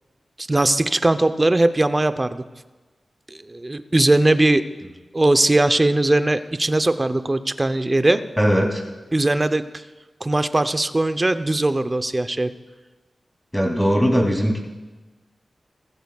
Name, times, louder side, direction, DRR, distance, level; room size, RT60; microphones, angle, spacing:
voice 1, 0.4-2.4 3.3-4.6 5.1-8.2 9.1-9.6 10.2-12.5, right 2 dB, 25° right, 10 dB, 0.7 m, -19 dB
voice 2, 8.4-8.8 13.5-14.6, equal, 5° left, 0 dB, 2.8 m, -19 dB
20.0 x 15.0 x 2.4 m, 1.2 s
cardioid pair, 60°, 0 cm